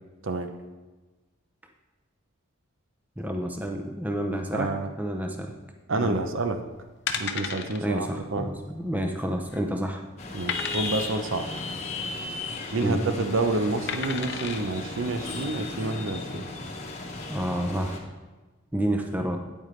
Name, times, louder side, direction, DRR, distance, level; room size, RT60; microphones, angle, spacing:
voice 1, 3.2-4.7 5.0-5.5 6.0-6.2 7.8-10.0 12.8-13.0 17.3-18.0 18.7-19.4, right 1 dB, 10° right, 3 dB, 0.6 m, -29 dB
voice 2, 4.5-4.9 5.9-6.6 7.1-8.5 10.3-11.5 12.7-16.4, right 3 dB, 65° right, 7 dB, 0.7 m, -28 dB
sound 1, 6.4-6.6 7.1-7.8 8.1-8.3 8.6-8.7 9.2-9.7 10.5-11.2 12.5-12.9 13.9-14.6 15.2-15.3, left 6 dB, 50° left, 0.6 m, -33 dB
sound 2, 10.2-18.0, left 3 dB, 30° left, 1.0 m, -35 dB
9.2 x 8.8 x 3.2 m, 1.2 s
head